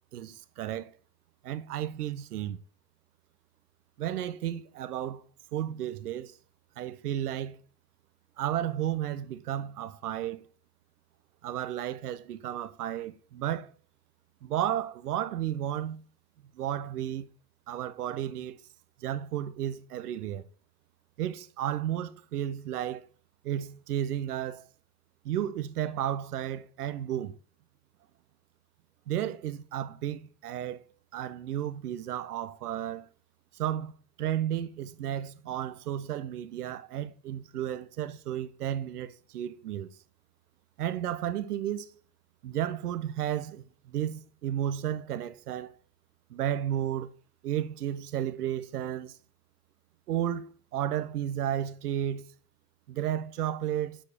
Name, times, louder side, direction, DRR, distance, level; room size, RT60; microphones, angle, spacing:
voice 1, 0.1-0.9 1.4-2.6 4.0-5.2 5.5-6.3 6.8-7.6 8.4-10.4 11.4-13.7 14.4-16.0 16.5-17.3 17.7-18.6 19.0-20.4 21.2-23.1 23.4-24.6 25.2-27.3 29.1-30.8 31.1-33.1 33.6-33.9 34.2-39.9 40.8-41.9 42.4-45.7 46.3-47.1 47.4-49.1 50.1-52.2 52.9-54.0, right 11 dB, 85° right, 1.1 m, -33 dB
8.8 x 7.6 x 5.0 m
supercardioid pair, 135°, 44 cm